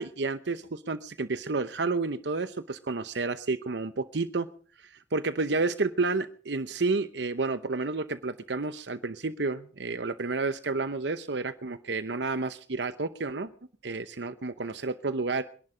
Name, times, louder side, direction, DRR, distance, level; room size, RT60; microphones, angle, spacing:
voice 1, 0.0-4.5 5.1-13.5 13.8-15.4, right 3 dB, 70° right, 12 dB, 0.8 m, -30 dB
24.5 x 11.0 x 5.0 m, 0.43 s
head